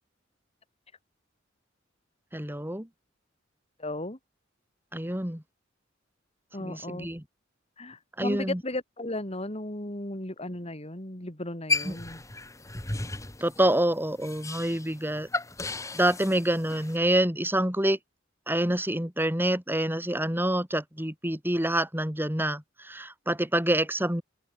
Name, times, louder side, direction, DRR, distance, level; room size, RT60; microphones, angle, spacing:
voice 1, 2.3-2.9 4.9-5.4 6.6-7.2 8.2-8.6 11.8-12.0 13.4-15.3 15.9-18.0 18.5-24.2, right 1 dB, 10° right, 4.4 m, -27 dB
voice 2, 3.8-4.2 6.5-7.1 7.8-12.2, left 1 dB, 35° left, 4.3 m, -35 dB
sound 1, 11.7-17.0, left 3 dB, 15° left, 1.6 m, -34 dB
head